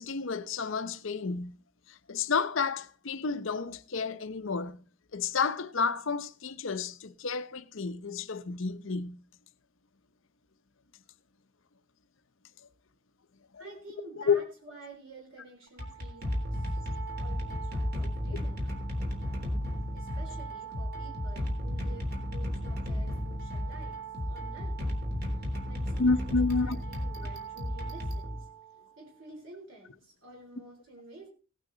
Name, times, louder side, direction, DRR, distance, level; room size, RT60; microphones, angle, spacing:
voice 1, 0.0-1.6 1.9-4.8 5.1-9.2 13.5-13.6 14.3-14.4 26.0-26.8, left 4 dB, 65° left, 0.7 m, -30 dB
voice 2, 13.6-16.8 17.2-18.8 19.9-24.8 25.3-28.5 29.0-31.3, right 2 dB, 65° right, 3.6 m, -51 dB
sound 1, 15.7-28.9, equal, 50° right, 3.5 m, -34 dB
17.5 x 9.1 x 3.9 m
head